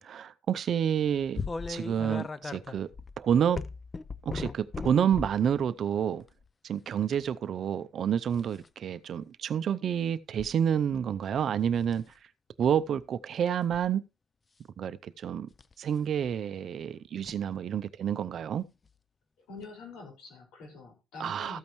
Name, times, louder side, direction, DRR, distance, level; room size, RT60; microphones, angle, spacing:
voice 1, 0.0-1.4 1.7-2.9 3.2-3.6 4.2-6.2 6.6-12.0 12.6-14.0 14.8-15.5 15.8-18.6 21.2-21.6, right 8 dB, 45° right, 0.5 m, -29 dB
sound 1, 1.3-5.5 6.2-6.5 8.3-8.7 10.4-10.5 11.0-11.4 11.8-12.1 13.5-13.9 15.5-15.7 17.2-17.3 18.9-19.0 19.6-19.7, left 4 dB, 20° left, 0.4 m, -37 dB
voice 2, 19.5-21.6, left 3 dB, 80° left, 5.2 m, -45 dB
14.0 x 8.7 x 3.1 m
cardioid pair, 155°, 0 cm